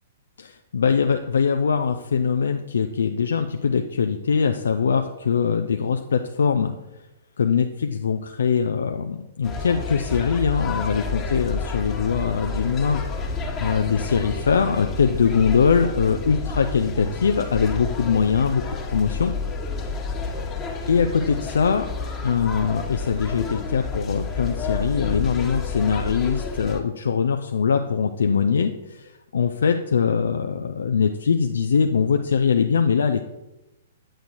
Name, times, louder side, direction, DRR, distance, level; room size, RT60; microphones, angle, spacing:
voice 1, 0.4-6.7 7.4-13.0 13.6-19.3 20.9-21.9 22.2-33.2, left 6 dB, 65° left, 6 dB, 0.4 m, -22 dB
sound 1, 9.4-26.8, left 4 dB, 20° left, 1.3 m, -30 dB
8.9 x 8.1 x 2.6 m, 0.97 s
figure-of-eight pair, 110°, 0 cm